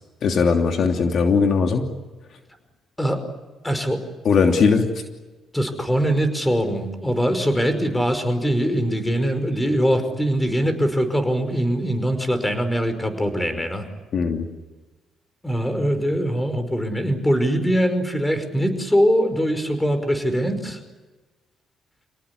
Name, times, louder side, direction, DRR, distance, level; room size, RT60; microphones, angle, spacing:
voice 1, 0.2-1.9 4.2-4.8 14.1-14.5, left 5 dB, 60° left, 3 dB, 3.0 m, -19 dB
voice 2, 3.6-4.0 5.5-13.9 15.4-20.8, equal, 10° left, 9 dB, 5.3 m, -22 dB
28.5 x 18.5 x 9.9 m, 1.2 s
cardioid pair, 90°, 0 cm